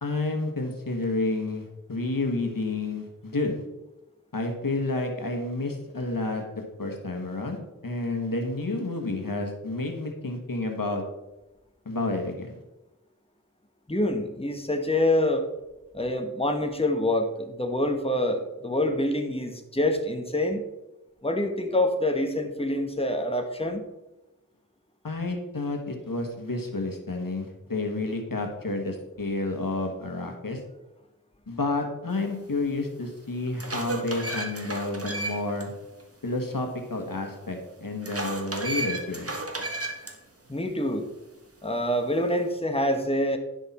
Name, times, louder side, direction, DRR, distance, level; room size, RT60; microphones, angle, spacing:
voice 1, 0.0-3.6 4.3-11.0 11.8-12.6 25.0-30.6 31.5-35.7 36.2-39.3, left 2 dB, 85° left, 3 dB, 1.4 m, -30 dB
voice 2, 13.9-15.4 15.9-20.6 21.2-23.8 40.5-41.1 41.6-43.4, left 1 dB, 15° left, 5 dB, 1.2 m, -26 dB
sound 1, 32.6-32.7 33.3-35.6 36.0-36.1 38.0-40.1, right 2 dB, 45° right, 1.5 m, -33 dB
10.5 x 6.3 x 4.2 m, 0.99 s
wide cardioid pair, 40°, 33 cm